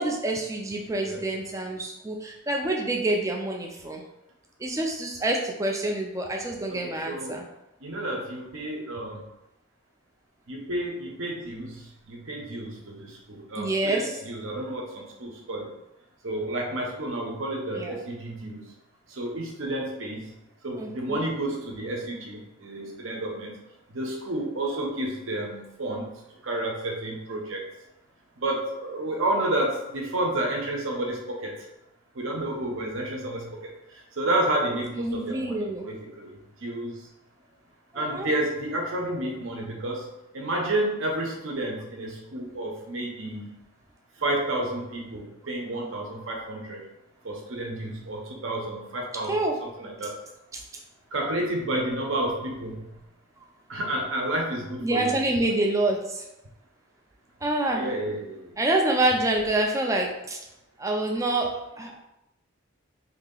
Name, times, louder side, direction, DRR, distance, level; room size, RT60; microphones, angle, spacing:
voice 1, 0.0-4.0 4.6-7.4 13.6-14.1 17.7-18.0 20.8-21.3 35.0-35.9 37.9-38.3 49.3-49.6 50.5-50.6 54.8-56.2 57.4-57.9 58.6-60.4 60.8-61.5 61.8-62.0, right 2 dB, 15° right, 1 dB, 0.4 m, -27 dB
voice 2, 6.8-7.4 7.8-9.2 10.5-15.7 16.2-18.6 19.1-20.3 20.6-23.5 23.9-26.1 26.4-27.6 28.4-31.5 32.1-36.3 36.6-37.1 37.9-40.1 40.3-43.5 44.2-46.8 47.2-49.3 49.6-50.1 51.1-53.0 53.7-55.1 57.7-58.6, right 1 dB, 70° right, 0 dB, 0.8 m, -30 dB
2.9 x 2.8 x 3.8 m, 0.91 s
head